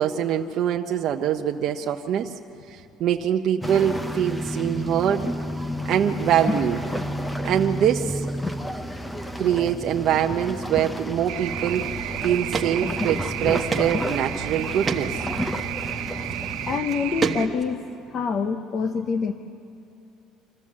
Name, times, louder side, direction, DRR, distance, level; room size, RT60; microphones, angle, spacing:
voice 1, 0.0-2.4 2.7-5.3 5.8-6.9 7.4-8.3 9.4-11.9 12.2-15.2, right 9 dB, 50° right, 3 dB, 0.7 m, -24 dB
sound 1, 3.6-16.8, equal, 5° left, 0.7 m, -31 dB
sound 2, 11.3-17.5, right 13 dB, 85° right, 0.8 m, -32 dB
sound 3, 11.9-12.0 12.5-12.7 13.0-13.1 13.7-13.9 14.3-14.4 14.8-15.0 16.2-16.3 16.9-17.7, right 5 dB, 20° right, 1.2 m, -26 dB
voice 2, 16.7-17.8 18.1-19.3, left 5 dB, 40° left, 8 dB, 0.8 m, -26 dB
26.5 x 14.5 x 7.4 m, 2.6 s
cardioid pair, 145°, 0 cm